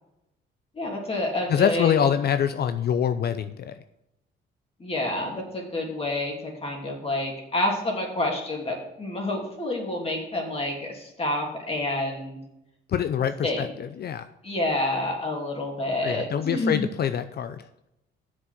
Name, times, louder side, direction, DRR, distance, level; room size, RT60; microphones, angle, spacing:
voice 1, 0.7-1.9 4.8-12.4 13.4-13.7 14.4-16.8, left 1 dB, 30° left, -1 dB, 3.0 m, -28 dB
voice 2, 1.5-3.7 12.9-14.3 16.0-17.7, left 8 dB, 55° left, 11 dB, 0.6 m, -25 dB
7.4 x 6.4 x 7.5 m, 0.87 s
cardioid pair, 90°, 20 cm